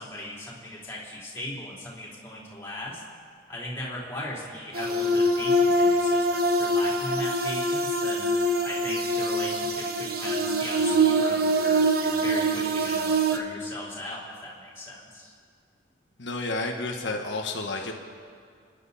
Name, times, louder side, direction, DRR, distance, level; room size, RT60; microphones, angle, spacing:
voice 1, 0.0-3.0 3.5-8.3 8.6-15.3, left 1 dB, 15° left, -6 dB, 3.7 m, -38 dB
sound 1, 4.7-13.4, right 1 dB, 50° right, 1.1 m, -24 dB
voice 2, 16.2-17.9, left 2 dB, 70° left, 1 dB, 1.4 m, -31 dB
29.5 x 11.0 x 4.2 m, 2.3 s
head